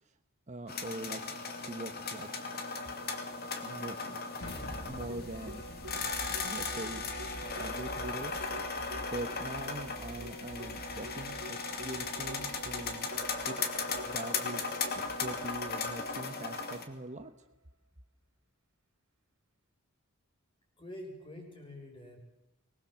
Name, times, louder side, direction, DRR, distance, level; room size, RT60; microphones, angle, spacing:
voice 1, 0.5-1.2 1.6-2.3 3.6-4.3 4.9-5.7 6.0-7.0 7.4-8.5 9.1-13.1 13.5-13.6 13.9-14.6 14.9-17.3, right 1 dB, 30° right, 8 dB, 1.1 m, -43 dB
sound 1, 0.7-16.9, left 4 dB, 45° left, 2.5 m, -37 dB
sound 2, 4.3-16.2, equal, 65° left, 7.0 m, -49 dB
Keyboard (musical), 5.1-17.5, right 2 dB, 70° right, 2.2 m, -49 dB
voice 2, 20.8-22.2, left 1 dB, 25° left, 3 dB, 5.9 m, -46 dB
24.0 x 20.5 x 7.4 m, 0.94 s
head